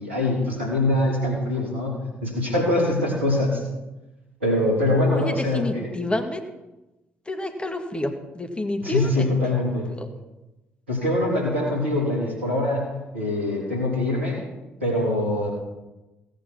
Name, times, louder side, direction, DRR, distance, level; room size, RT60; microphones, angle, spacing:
voice 1, 0.0-3.6 4.4-5.9 8.8-9.9 10.9-14.4 14.8-15.5, left 1 dB, 85° right, -3 dB, 3.3 m, -23 dB
voice 2, 5.1-6.4 7.3-9.3 10.0-10.1, left 1 dB, 15° left, 5 dB, 1.9 m, -28 dB
16.5 x 8.7 x 6.0 m, 1.0 s
figure-of-eight pair, 45°, 6 cm